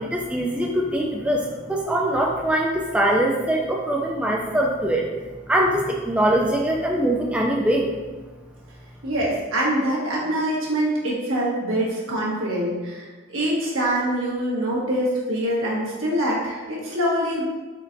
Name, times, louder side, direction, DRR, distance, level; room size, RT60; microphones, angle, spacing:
voice 1, 0.0-5.1 5.5-7.9, right 1 dB, 5° right, -1 dB, 0.3 m, -22 dB
voice 2, 9.0-17.4, right 1 dB, 80° right, -5 dB, 1.4 m, -24 dB
4.4 x 4.4 x 2.6 m, 1.3 s
head